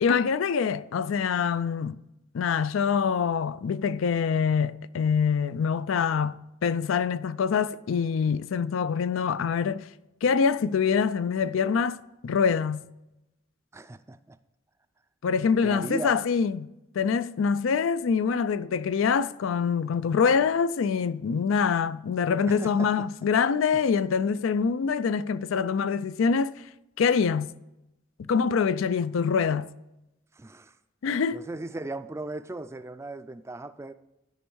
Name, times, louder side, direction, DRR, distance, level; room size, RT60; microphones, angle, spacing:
voice 1, 0.0-2.0 2.3-9.9 10.2-12.8 15.2-16.7 16.9-26.5 27.0-27.5 28.2-29.7 31.0-31.4, left 6 dB, 85° left, 0.4 m, -25 dB
voice 2, 13.7-14.4 15.6-16.2 22.5-23.1 23.7-23.8 30.3-30.7 31.3-33.9, right 2 dB, 15° right, 0.3 m, -37 dB
12.0 x 5.2 x 4.7 m
head